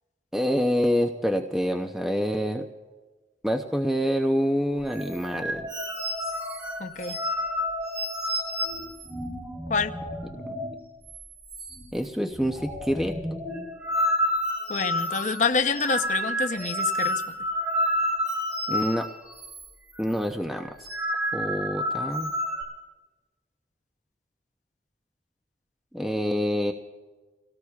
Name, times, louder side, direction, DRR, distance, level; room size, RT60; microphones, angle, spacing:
voice 1, 0.3-2.6 3.4-5.7 11.9-13.1 18.7-19.1 20.0-20.7 21.3-22.3 25.9-26.7, equal, ahead, 3 dB, 0.6 m, -26 dB
sound 1, 4.8-10.8 11.1-11.2 11.5-12.1 12.3-19.7 19.9-20.2 20.6-22.6, equal, 20° right, 3.1 m, -30 dB
voice 2, 6.8-7.1 9.7-9.9 14.7-17.2, left 5 dB, 45° left, 9 dB, 0.7 m, -27 dB
30.0 x 18.0 x 2.4 m, 1.3 s
head